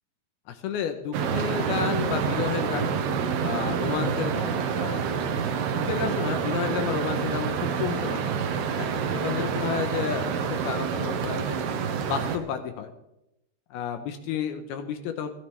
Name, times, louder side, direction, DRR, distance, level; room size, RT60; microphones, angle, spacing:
voice 1, 0.5-2.9 3.4-5.1 5.7-7.5 7.8-8.3 8.8-11.6 12.0-12.9 13.7-15.3, left 8 dB, 75° left, 7 dB, 2.6 m, -31 dB
sound 1, 1.1-12.4, right 6 dB, 75° right, 3.1 m, -27 dB
17.5 x 14.0 x 3.4 m, 0.87 s
omnidirectional pair, 5.0 m